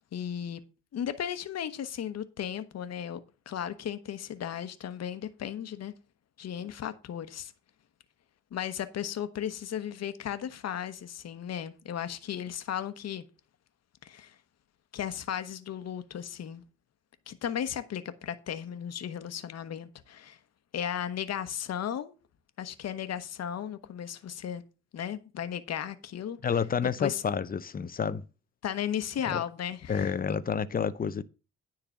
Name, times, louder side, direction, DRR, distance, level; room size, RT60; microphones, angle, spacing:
voice 1, 0.1-0.6 0.9-5.9 6.4-7.5 8.5-13.2 14.0-14.4 14.9-16.6 17.3-20.4 20.7-22.1 22.6-24.6 24.9-26.4 27.0-27.2 28.6-30.1, left 9 dB, 55° left, 1.1 m, -35 dB
voice 2, 26.4-28.3 29.3-29.4 29.9-31.2, left 6 dB, 30° left, 0.7 m, -29 dB
9.9 x 3.9 x 7.4 m
cardioid pair, 90°, 30 cm